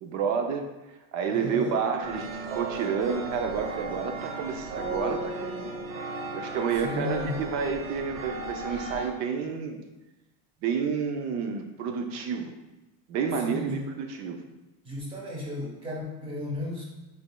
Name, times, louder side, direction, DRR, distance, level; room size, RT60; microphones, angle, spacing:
voice 1, 0.0-5.7 6.3-9.8 10.6-12.6 13.1-14.4, right 6 dB, 45° right, 5 dB, 0.5 m, -30 dB
voice 2, 1.3-1.8 6.8-7.4 13.4-13.9 14.8-16.8, left 2 dB, 15° right, -3 dB, 1.0 m, -34 dB
sound 1, 2.0-9.1, right 3 dB, 75° right, 1.1 m, -36 dB
5.0 x 4.1 x 2.2 m, 1.1 s
cardioid pair, 145°, 42 cm